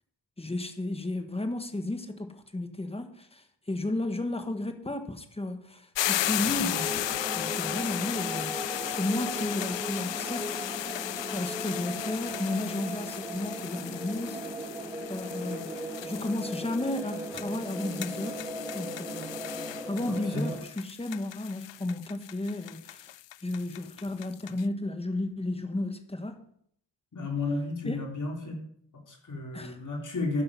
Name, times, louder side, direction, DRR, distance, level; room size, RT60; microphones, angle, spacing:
voice 1, 0.4-7.0 7.3-10.9 11.3-14.4 15.1-15.7 16.0-18.5 18.7-23.1 23.4-26.4 27.8-28.0 29.5-29.8, left 2 dB, 15° left, 1.4 m, -33 dB
sound 1, 5.9-24.6, left 13 dB, 70° left, 0.5 m, -36 dB
sound 2, 6.7-20.6, right 1 dB, 5° right, 2.2 m, -38 dB
voice 2, 20.1-20.5 27.1-28.6 28.9-30.4, left 2 dB, 40° left, 3.4 m, -32 dB
12.5 x 10.5 x 5.6 m
wide cardioid pair, 155°, 46 cm